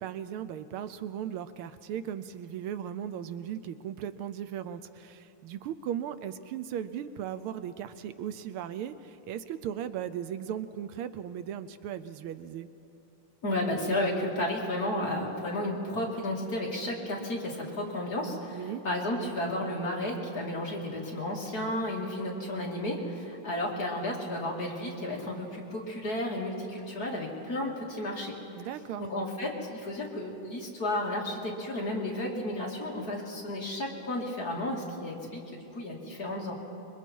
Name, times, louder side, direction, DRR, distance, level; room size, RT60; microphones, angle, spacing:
voice 1, 0.0-12.7 18.5-18.8 28.6-29.1, right 9 dB, 80° right, 12 dB, 1.5 m, -37 dB
voice 2, 13.4-28.3 29.0-36.5, left 1 dB, 40° left, -3 dB, 3.1 m, -33 dB
26.0 x 22.5 x 4.6 m, 2.9 s
omnidirectional pair, 2.4 m